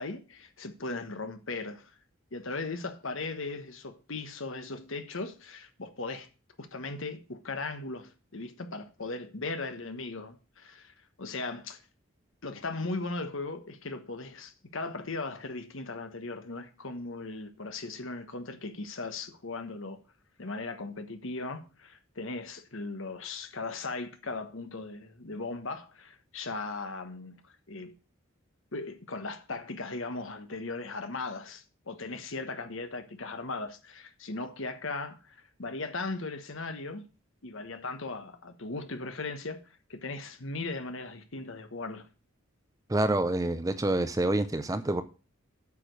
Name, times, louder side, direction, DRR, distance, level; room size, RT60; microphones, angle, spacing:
voice 1, 0.0-1.9 2.3-6.3 6.6-11.8 12.4-20.0 20.4-27.9 28.7-37.1 37.4-42.1, left 3 dB, 65° left, 1.2 m, -38 dB
voice 2, 42.9-45.0, right 1 dB, 15° right, 0.5 m, -27 dB
8.5 x 5.1 x 6.2 m
head